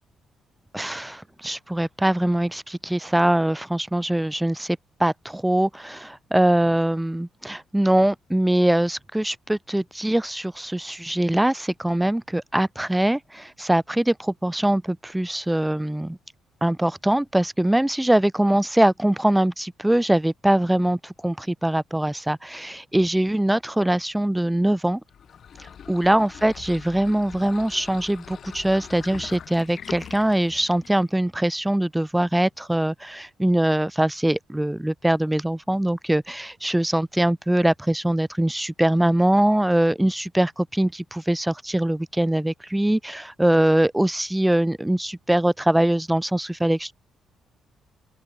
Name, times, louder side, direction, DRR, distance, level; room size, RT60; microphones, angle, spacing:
voice 1, 0.7-16.2 16.6-25.0 25.6-46.9, right 1 dB, 5° right, 0.6 m, -22 dB
sound 1, 25.1-31.1, left 8 dB, 55° left, 3.9 m, -42 dB
open air
cardioid pair, 90°, 0 cm